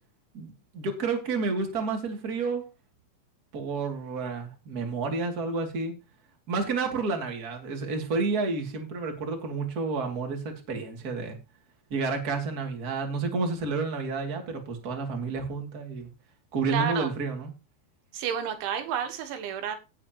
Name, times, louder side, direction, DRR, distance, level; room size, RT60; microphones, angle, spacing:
voice 1, 0.3-2.6 3.5-5.9 6.5-11.4 11.9-16.1 16.5-17.5, right 4 dB, 25° right, 3 dB, 2.2 m, -30 dB
voice 2, 16.7-17.1 18.1-19.8, right 8 dB, 85° right, 8 dB, 3.7 m, -30 dB
17.0 x 7.3 x 3.0 m, 0.28 s
omnidirectional pair, 5.3 m